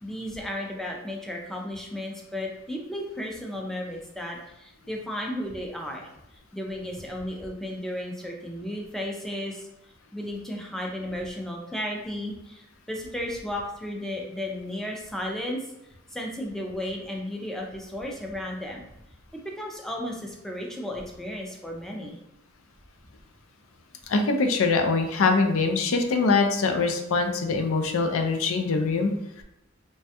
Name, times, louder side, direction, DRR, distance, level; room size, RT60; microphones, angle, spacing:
voice 1, 0.0-6.1 6.5-9.7 10.1-15.6 16.1-18.8 19.4-22.2, left 1 dB, ahead, 0 dB, 0.4 m, -34 dB
voice 2, 24.1-29.1 29.4-29.5, left 4 dB, 75° left, 5 dB, 0.4 m, -23 dB
3.1 x 2.2 x 2.8 m, 0.88 s
head